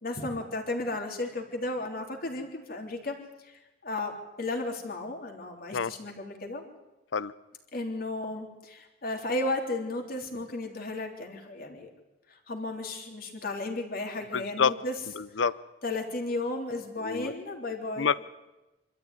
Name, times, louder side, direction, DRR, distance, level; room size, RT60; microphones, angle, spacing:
voice 1, 0.0-3.2 3.4-3.5 3.8-4.1 4.4-6.7 7.7-11.9 12.5-14.9 15.8-18.1, left 2 dB, 50° left, 2 dB, 3.5 m, -34 dB
voice 2, 14.3-14.7 15.1-15.6 17.0-17.3 18.0-18.2, left 6 dB, 75° left, 17 dB, 0.7 m, -27 dB
26.0 x 13.5 x 9.6 m, 1.0 s
head